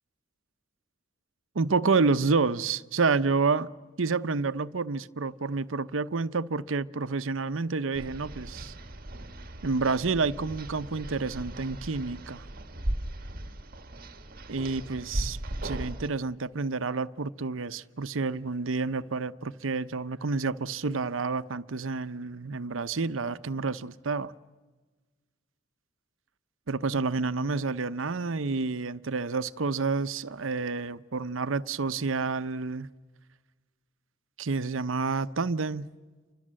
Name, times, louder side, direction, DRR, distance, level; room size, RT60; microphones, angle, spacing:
voice 1, 1.5-3.7 4.0-8.7 9.6-12.4 14.5-15.4 15.6-24.3 26.7-32.9 34.4-35.9, right 4 dB, 90° right, 0.8 m, -29 dB
sound 1, 7.9-16.1, right 1 dB, 50° right, 1.6 m, -37 dB
29.5 x 25.0 x 7.6 m
head